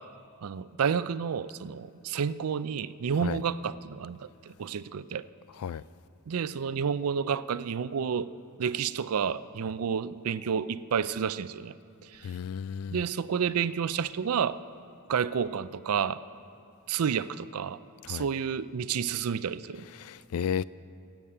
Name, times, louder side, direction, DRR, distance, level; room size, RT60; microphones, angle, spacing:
voice 1, 0.4-5.2 6.3-8.3 8.6-11.7 12.1-12.3 12.9-14.6 15.1-16.2 16.9-17.8 18.1-19.9, right 7 dB, 75° right, 0.4 m, -30 dB
voice 2, 12.2-13.0 18.0-18.3 20.0-20.6, left 7 dB, 70° left, 0.3 m, -33 dB
16.5 x 7.3 x 8.6 m
head